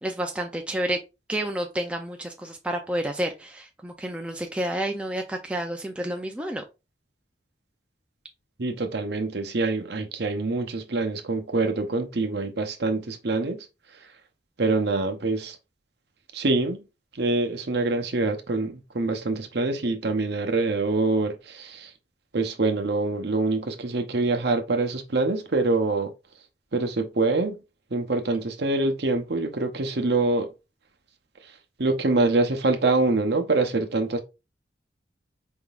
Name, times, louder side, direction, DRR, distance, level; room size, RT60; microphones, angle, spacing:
voice 1, 0.0-1.0 1.3-6.6, right 1 dB, 5° right, 0.4 m, -30 dB
voice 2, 8.6-13.7 14.6-15.6 16.3-16.8 17.1-21.9 22.3-26.1 26.7-27.6 27.9-30.5 31.4-34.2, right 3 dB, 60° right, 0.8 m, -25 dB
4.6 x 3.6 x 2.4 m
head